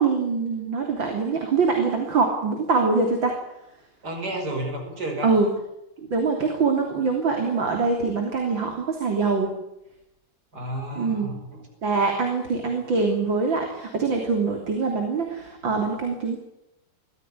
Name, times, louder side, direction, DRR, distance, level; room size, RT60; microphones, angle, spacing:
voice 1, 0.0-3.4 5.2-5.5 6.1-9.5 11.0-11.3 11.8-16.4, right 4 dB, 85° right, 3 dB, 4.0 m, -24 dB
voice 2, 4.0-5.3 10.5-11.6, right 1 dB, 55° right, 4 dB, 6.0 m, -31 dB
23.5 x 15.5 x 10.0 m, 0.87 s
omnidirectional pair, 2.0 m